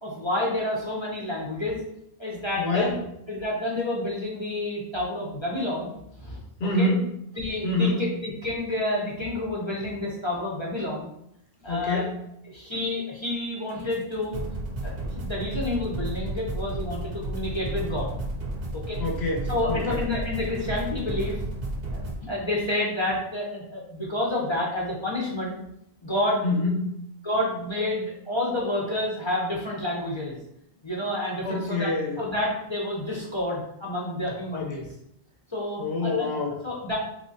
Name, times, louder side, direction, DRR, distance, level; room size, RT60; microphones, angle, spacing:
voice 1, 0.0-1.8 2.2-3.0 3.3-6.4 6.8-6.9 7.3-11.1 11.6-12.0 12.5-14.4 14.8-18.1 18.7-19.0 19.5-21.4 21.9-25.6 26.0-26.5 27.2-30.4 30.8-34.8 35.5-36.3 36.6-37.0, left 1 dB, 30° left, -5 dB, 0.6 m, -29 dB
voice 2, 2.6-2.9 6.6-7.0 7.6-8.0 11.7-12.1 19.0-20.0 26.4-26.8 31.4-32.2 34.5-34.7 35.8-36.6, left 2 dB, 90° left, 0 dB, 1.0 m, -26 dB
sound 1, 13.9-14.0 14.3-22.1, right 1 dB, 70° right, 0.9 m, -32 dB
3.7 x 2.8 x 2.7 m, 0.77 s
omnidirectional pair, 1.0 m